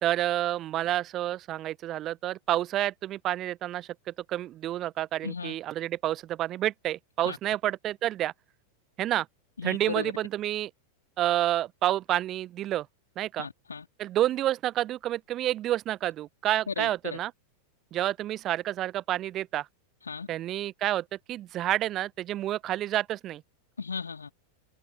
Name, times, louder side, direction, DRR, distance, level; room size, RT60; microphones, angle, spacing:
voice 1, 0.0-8.3 9.0-9.3 9.6-10.7 11.2-12.9 13.2-13.5 14.0-17.3 17.9-19.7 20.3-23.4, right 13 dB, 30° right, 0.6 m, -29 dB
voice 2, 5.2-5.5 7.2-7.4 9.6-10.1 13.4-13.9 16.7-17.2 20.0-20.3 23.8-24.3, left 5 dB, 75° left, 3.2 m, -35 dB
figure-of-eight pair, 90°, 0 cm